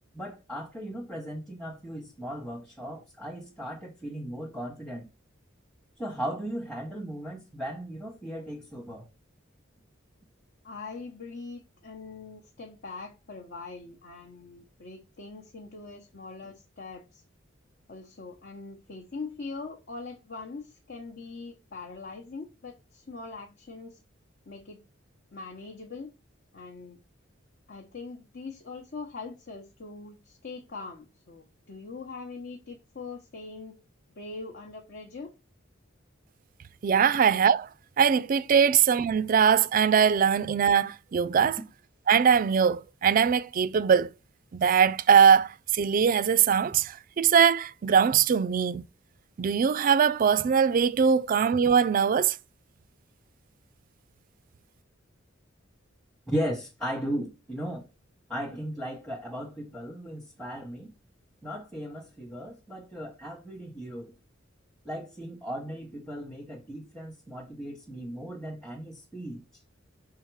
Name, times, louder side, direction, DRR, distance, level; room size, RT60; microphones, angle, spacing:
voice 1, 0.1-5.1 6.0-9.0 56.3-57.9 58.3-60.9 61.4-64.1 64.8-69.4, equal, 5° left, 0.9 m, -36 dB
voice 2, 10.6-17.2 17.9-24.0 24.5-24.8 25.3-26.1 26.5-27.0 27.7-33.8 34.1-35.3, left 4 dB, 55° left, 1.0 m, -42 dB
voice 3, 36.8-37.7 38.0-41.6 42.1-44.1 44.5-48.8 49.4-52.4, right 7 dB, 45° right, 0.3 m, -22 dB
5.7 x 3.8 x 4.7 m
head